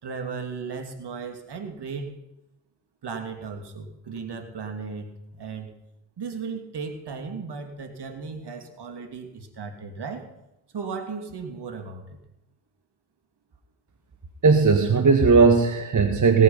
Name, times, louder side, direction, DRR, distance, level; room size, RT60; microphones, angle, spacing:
voice 1, 0.0-2.2 3.0-5.7 6.2-10.3 10.7-12.2, right 5 dB, 50° right, 6 dB, 2.6 m, -36 dB
voice 2, 14.4-16.4, right 4 dB, 35° right, 5 dB, 1.7 m, -17 dB
17.5 x 9.7 x 5.6 m, 0.90 s
hypercardioid pair, 45°, 50 cm